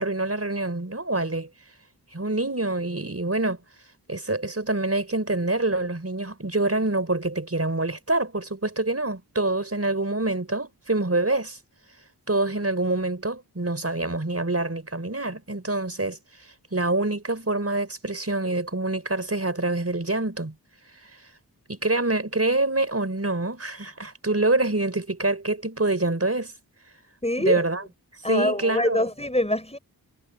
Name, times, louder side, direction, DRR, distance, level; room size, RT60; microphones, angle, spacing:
voice 1, 0.0-1.5 2.1-3.6 4.1-11.6 12.3-16.2 16.7-20.5 21.0-21.1 21.7-26.5 27.4-27.8 28.3-29.0, right 2 dB, 35° right, 4.9 m, -26 dB
voice 2, 27.2-27.6 28.2-29.8, left 1 dB, 15° left, 5.6 m, -24 dB
wide cardioid pair, 45°, 39 cm